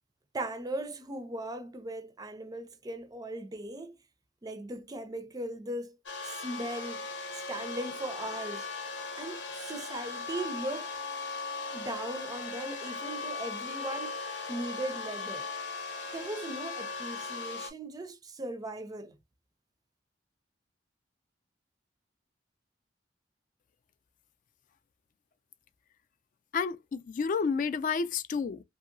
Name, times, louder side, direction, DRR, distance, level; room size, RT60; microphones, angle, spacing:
voice 1, 0.3-3.9 4.4-6.0 6.2-7.1 7.3-8.7 9.2-10.9 11.7-14.2 14.5-15.5 16.1-19.2, right 1 dB, 20° right, 0.4 m, -38 dB
sound 1, 6.1-17.7, left 4 dB, 75° left, 0.8 m, -38 dB
voice 2, 26.5-28.6, left 5 dB, 45° left, 0.3 m, -30 dB
2.8 x 2.7 x 2.5 m
head